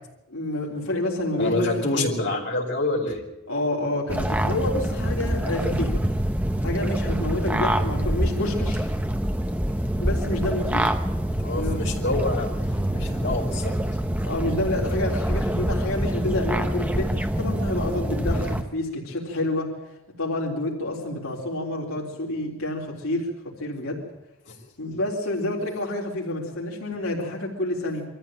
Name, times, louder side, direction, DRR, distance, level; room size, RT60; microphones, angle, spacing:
voice 1, 0.3-2.1 3.5-6.0 6.6-8.9 10.0-10.9 11.5-11.8 14.2-19.7 20.2-24.0 24.8-28.1, left 1 dB, 90° left, -3 dB, 3.9 m, -28 dB
voice 2, 1.4-3.2 11.4-12.5 12.9-13.7 24.4-24.6, left 2 dB, 55° left, -2 dB, 5.1 m, -27 dB
sound 1, 4.1-18.6, right 1 dB, 5° right, 1.0 m, -25 dB
23.5 x 14.5 x 9.1 m, 0.92 s
head